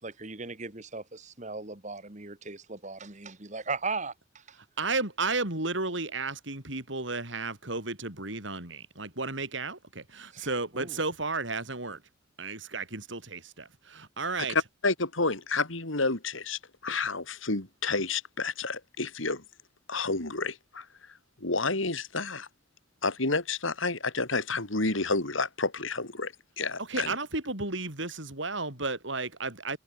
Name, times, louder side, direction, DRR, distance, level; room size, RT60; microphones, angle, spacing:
voice 1, 0.0-4.6 10.3-10.5 10.7-11.0, right 4 dB, 35° right, 2.0 m, -38 dB
voice 2, 4.8-12.0 12.4-14.6 26.8-29.8, right 3 dB, 65° right, 5.8 m, -33 dB
voice 3, 14.5-19.4 19.9-20.9 21.4-22.5 23.0-27.2, left 3 dB, 75° left, 3.7 m, -30 dB
head